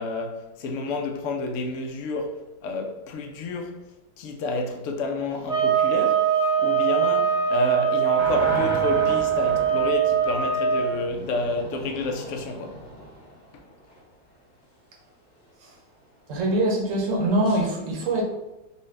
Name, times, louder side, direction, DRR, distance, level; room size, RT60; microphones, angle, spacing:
voice 1, 0.0-3.8 4.2-12.8 13.5-13.6, left 3 dB, 85° left, 0.6 m, -30 dB
sound 1, 5.5-10.9, right 8 dB, 5° right, 0.6 m, -22 dB
sound 2, 8.2-14.0 17.4-17.6, left 1 dB, 40° left, 0.6 m, -36 dB
voice 2, 16.3-18.3, right 1 dB, 55° right, 1.0 m, -23 dB
4.2 x 2.3 x 3.2 m
omnidirectional pair, 2.0 m